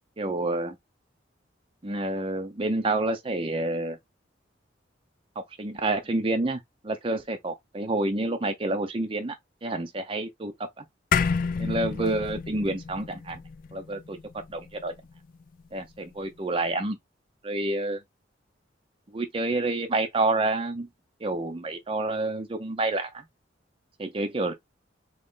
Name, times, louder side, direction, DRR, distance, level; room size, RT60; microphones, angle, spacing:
voice 1, 0.2-0.8 1.8-4.0 5.4-9.3 9.6-10.8 11.6-13.4 13.7-14.9 15.7-17.0 17.4-18.0 19.1-20.9 21.2-23.2 24.0-24.5, right 2 dB, 30° right, 0.5 m, -28 dB
sound 1, 11.1-15.7, left 5 dB, 50° left, 0.4 m, -30 dB
3.9 x 3.1 x 3.7 m
head